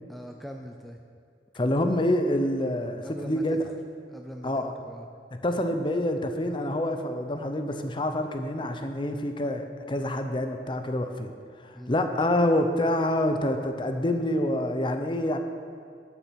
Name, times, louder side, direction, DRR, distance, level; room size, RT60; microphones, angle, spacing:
voice 1, 0.1-1.0 1.5-1.7 3.0-3.6 4.1-5.1 11.7-12.0, equal, ahead, 2 dB, 0.4 m, -41 dB
voice 2, 1.6-3.6 4.4-4.7 5.3-11.3 11.6-15.4, left 1 dB, 30° left, 6 dB, 0.7 m, -27 dB
11.5 x 6.7 x 6.4 m, 2.3 s
head